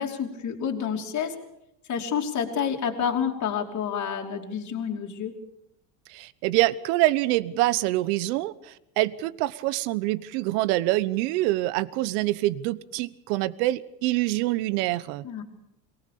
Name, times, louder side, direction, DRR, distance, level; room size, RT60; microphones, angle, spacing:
voice 1, 0.0-1.3 1.9-5.3 15.2-15.4, left 7 dB, 35° left, 2 dB, 3.1 m, -29 dB
voice 2, 6.1-15.2, right 17 dB, 75° right, 18 dB, 1.1 m, -25 dB
23.0 x 18.5 x 6.8 m, 0.83 s
supercardioid pair, 130°, 49 cm